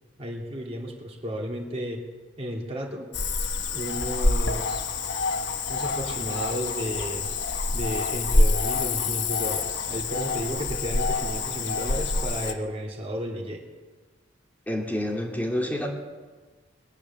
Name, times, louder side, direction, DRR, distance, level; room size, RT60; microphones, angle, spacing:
voice 1, 0.2-2.0 2.4-3.1 3.7-4.9 5.7-7.3 7.7-13.6, equal, 30° right, -1 dB, 2.8 m, -33 dB
Cricket / Frog, 3.1-12.5, left 3 dB, 65° left, 1.2 m, -26 dB
voice 2, 14.7-15.9, left 1 dB, 10° left, -1 dB, 2.7 m, -28 dB
22.0 x 8.6 x 7.5 m, 1.4 s
head